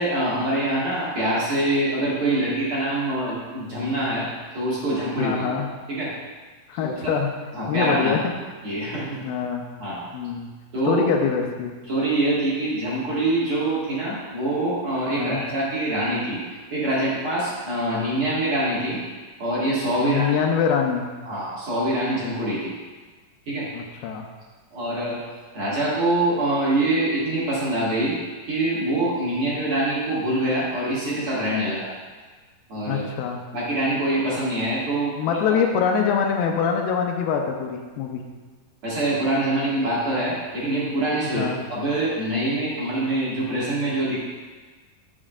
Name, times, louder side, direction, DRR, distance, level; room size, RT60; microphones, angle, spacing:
voice 1, 0.0-4.3 4.5-5.5 5.9-6.1 6.8-7.1 7.5-8.2 8.6-9.2 9.8-10.0 10.7-11.0 11.9-16.4 16.7-19.0 19.4-20.3 21.3-22.8 23.5-23.7 24.7-25.2 25.5-28.1 28.5-31.9 32.7-33.1 33.5-35.4 38.8-44.2, right 1 dB, 45° right, -8 dB, 2.2 m, -24 dB
voice 2, 5.2-5.7 6.7-7.3 7.7-8.3 9.2-9.7 10.1-10.5 10.9-11.7 15.1-15.4 20.0-21.1 23.7-24.3 32.9-33.4 35.2-38.2 41.3-41.6, left 7 dB, 85° left, 2 dB, 2.6 m, -24 dB
10.5 x 6.2 x 2.5 m, 1.4 s
omnidirectional pair, 4.3 m